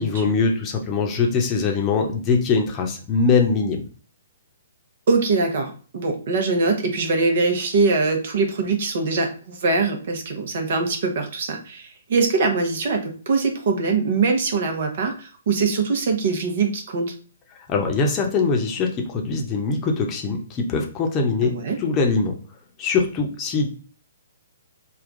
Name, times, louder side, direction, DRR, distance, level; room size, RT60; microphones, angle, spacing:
voice 1, 0.0-3.8 17.7-22.3 22.8-23.7, left 4 dB, 25° left, 1 dB, 0.8 m, -22 dB
voice 2, 5.1-17.1 21.4-21.8, right 4 dB, 55° right, 4 dB, 0.9 m, -22 dB
3.5 x 2.3 x 3.7 m, 0.40 s
figure-of-eight pair, 125°, 0 cm